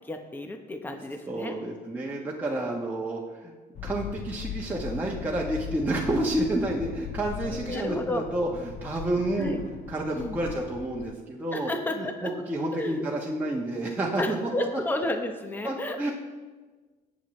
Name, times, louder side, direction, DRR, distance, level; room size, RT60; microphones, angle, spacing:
voice 1, 0.0-1.6 7.4-8.2 9.4-9.6 10.1-10.4 11.5-12.3 12.7-13.1 14.2-16.1, left 2 dB, 10° left, 5 dB, 0.9 m, -32 dB
voice 2, 0.9-3.5 3.8-9.6 9.9-14.7 15.6-16.1, right 1 dB, 10° right, -4 dB, 1.2 m, -30 dB
sound 1, 3.7-11.1, left 10 dB, 45° left, 0.5 m, -39 dB
17.5 x 7.3 x 3.2 m, 1.3 s
cardioid pair, 110°, 17 cm